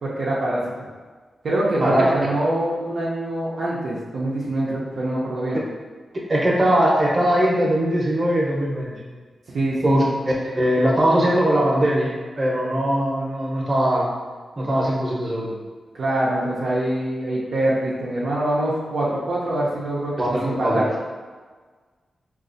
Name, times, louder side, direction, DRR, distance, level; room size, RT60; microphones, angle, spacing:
voice 1, 0.0-0.6 1.4-5.6 9.5-10.0 16.0-20.1 20.4-20.8, right 1 dB, 75° right, -7 dB, 0.5 m, -24 dB
voice 2, 6.3-9.0 9.8-10.0 10.5-14.1 14.6-15.5 20.2-20.8, right 1 dB, 40° right, -3 dB, 0.9 m, -20 dB
3.9 x 2.4 x 2.6 m, 1.4 s
cardioid pair, 60°, 0 cm